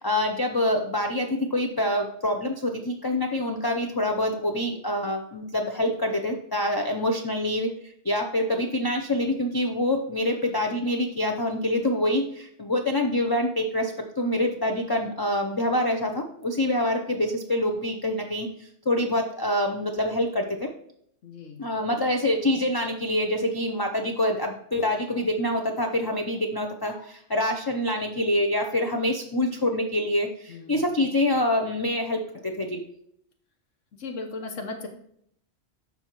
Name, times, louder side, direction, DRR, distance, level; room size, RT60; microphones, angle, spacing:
voice 1, 0.0-7.7 8.0-20.7 21.6-32.8, left 1 dB, 30° left, 3 dB, 0.4 m, -26 dB
voice 2, 21.2-21.7 30.5-30.8 34.0-34.9, left 3 dB, 80° left, 4 dB, 1.4 m, -36 dB
12.5 x 4.3 x 3.0 m, 0.70 s
omnidirectional pair, 1.3 m